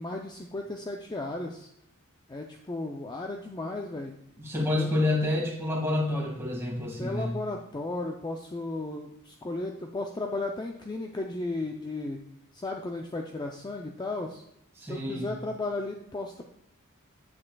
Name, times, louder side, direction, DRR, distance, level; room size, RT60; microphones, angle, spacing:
voice 1, 0.0-1.7 2.3-4.1 4.6-4.9 7.0-12.2 12.5-14.4 14.8-16.4, left 2 dB, 20° left, 2 dB, 0.4 m, -35 dB
voice 2, 4.4-7.4 14.8-15.3, left 2 dB, 10° right, -3 dB, 1.9 m, -28 dB
8.4 x 7.5 x 2.3 m, 0.79 s
head